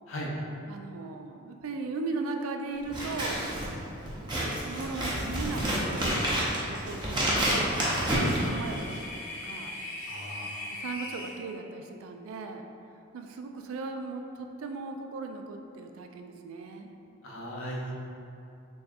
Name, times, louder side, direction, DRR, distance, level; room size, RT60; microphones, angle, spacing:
voice 1, 0.7-3.4 4.7-9.8 10.7-12.7 13.1-16.9, right 3 dB, 85° right, 5 dB, 0.3 m, -38 dB
Scissors, 2.8-9.1, right 1 dB, 20° right, 0.5 m, -29 dB
sound 1, 7.1-11.3, left 2 dB, 40° left, 0.7 m, -40 dB
voice 2, 10.1-10.5 17.2-17.9, equal, 70° left, -2 dB, 0.6 m, -37 dB
4.1 x 3.4 x 2.3 m, 2.7 s
head